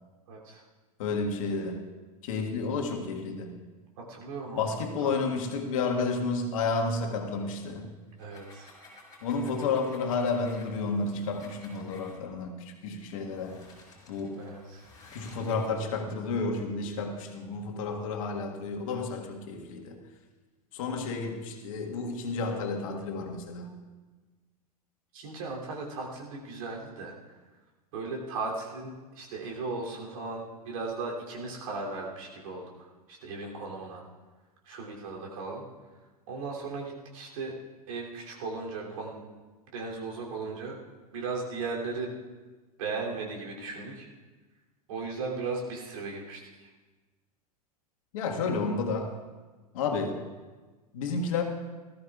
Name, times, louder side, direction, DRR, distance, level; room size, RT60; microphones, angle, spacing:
voice 1, 0.3-0.6 4.0-4.7 5.0-5.4 8.2-8.7 14.3-14.9 25.1-27.1 27.9-34.0 34.6-35.6 36.3-37.5 37.9-39.2 39.7-40.8 41.1-42.1 42.8-44.1 44.9-46.7, right 3 dB, 60° right, -2 dB, 3.1 m, -37 dB
voice 2, 1.0-1.9 2.2-3.5 4.6-7.9 9.2-13.6 14.1-14.4 15.1-20.0 20.7-23.7 48.1-49.2 49.7-50.2 50.9-51.4, left 4 dB, 60° left, 3 dB, 1.7 m, -31 dB
sound 1, 8.1-12.2 13.0-15.7, left 2 dB, 20° left, 4.9 m, -54 dB
19.0 x 13.5 x 2.4 m, 1.3 s
figure-of-eight pair, 90°, 20 cm